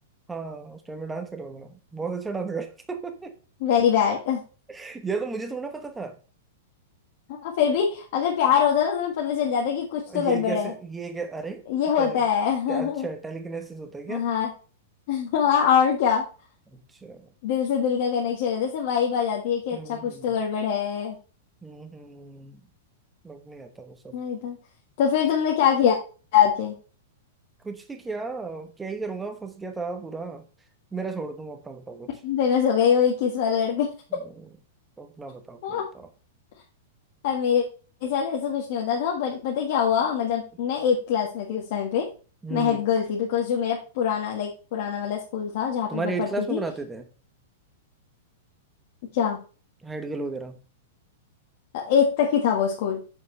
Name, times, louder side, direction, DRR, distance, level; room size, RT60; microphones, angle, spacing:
voice 1, 0.3-3.3 4.7-6.2 10.1-11.6 12.0-12.2 12.7-14.3 16.7-17.3 19.7-20.3 21.6-22.6 23.2-24.2 27.6-30.4 30.9-32.1 34.2-34.5 35.0-36.1 42.4-42.8 45.9-47.1 49.8-50.6, right 4 dB, 5° right, 7 dB, 1.0 m, -34 dB
voice 2, 3.6-4.4 7.4-10.7 11.7-13.1 14.1-14.5 15.1-16.2 17.4-21.2 24.1-24.6 25.0-26.0 26.3-26.7 32.2-33.9 35.6-35.8 37.2-37.6 38.0-42.1 42.5-46.6 49.1-49.4 51.7-53.0, left 8 dB, 50° left, -1 dB, 1.6 m, -23 dB
8.0 x 7.1 x 3.2 m, 0.36 s
supercardioid pair, 165°, 0 cm